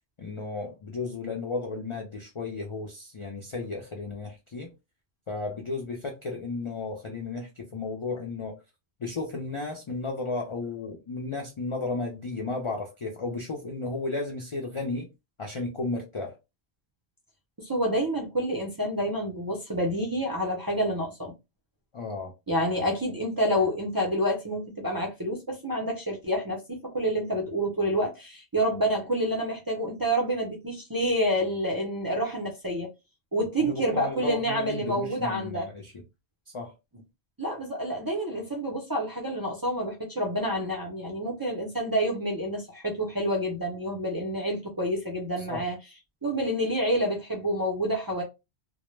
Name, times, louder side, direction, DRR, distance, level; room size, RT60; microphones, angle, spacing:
voice 1, 0.2-4.7 5.3-8.6 9.0-15.1 15.4-16.4 21.9-22.3 33.6-35.9 36.5-36.7 45.4-45.7, left 3 dB, 50° left, 0.3 m, -34 dB
voice 2, 17.6-21.3 22.5-32.9 33.3-35.7 37.4-45.8 46.2-48.2, equal, 30° right, 0.4 m, -28 dB
2.1 x 2.1 x 3.0 m
omnidirectional pair, 1.1 m